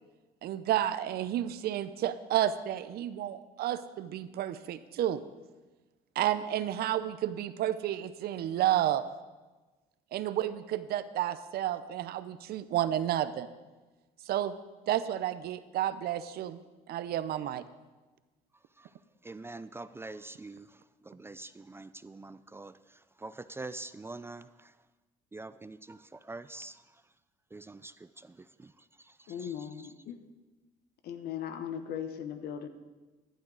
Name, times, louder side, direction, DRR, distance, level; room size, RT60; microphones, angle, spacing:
voice 1, 0.4-5.2 6.2-9.0 10.1-13.5 14.3-14.5 14.9-16.6 16.9-17.6, right 12 dB, 70° right, 0.7 m, -31 dB
voice 2, 19.2-24.7 25.3-26.8 27.5-28.7 29.0-29.9, right 2 dB, 15° right, 0.3 m, -45 dB
voice 3, 29.3-30.2 31.0-32.7, left 9 dB, 70° left, 1.1 m, -38 dB
14.5 x 11.0 x 4.0 m
cardioid pair, 110°, 17 cm